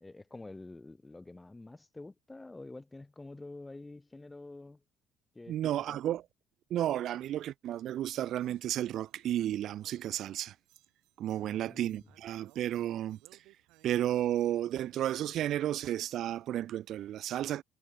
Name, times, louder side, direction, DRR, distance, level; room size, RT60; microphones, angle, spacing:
voice 1, 0.0-4.8 5.3-6.0 11.4-12.1, left 2 dB, 15° left, 1.5 m, -48 dB
voice 2, 5.5-6.2 6.7-10.5 11.2-13.2 13.8-17.6, right 12 dB, 65° right, 0.6 m, -32 dB
sound 1, 8.4-15.7, right 20 dB, 80° right, 5.0 m, -65 dB
supercardioid pair, 90°, 0 cm